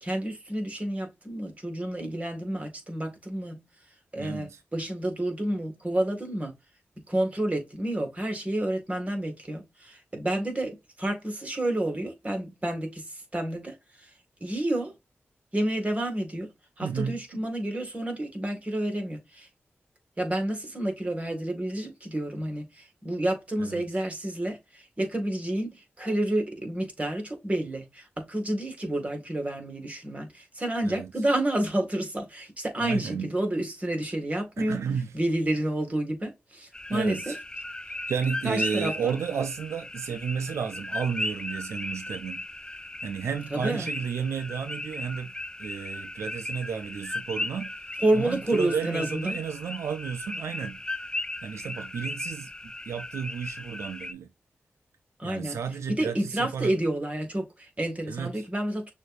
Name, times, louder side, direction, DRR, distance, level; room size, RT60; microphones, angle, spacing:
voice 1, 0.0-3.6 4.1-6.5 7.0-13.8 14.4-14.9 15.5-16.5 16.8-19.5 20.2-34.8 35.1-37.3 38.4-39.2 43.5-43.9 48.0-49.4 55.2-55.6 55.9-58.9, right 1 dB, 30° right, 1.9 m, -29 dB
voice 2, 4.2-4.6 16.8-17.4 23.6-23.9 30.8-31.1 32.8-33.3 34.6-35.1 36.9-37.4 37.8-45.3 45.6-51.1 51.4-54.3 55.2-56.7 58.1-58.4, right 7 dB, 85° right, 0.4 m, -33 dB
sound 1, 36.7-54.1, left 2 dB, 15° left, 0.4 m, -36 dB
6.3 x 2.6 x 2.4 m
cardioid pair, 45°, 5 cm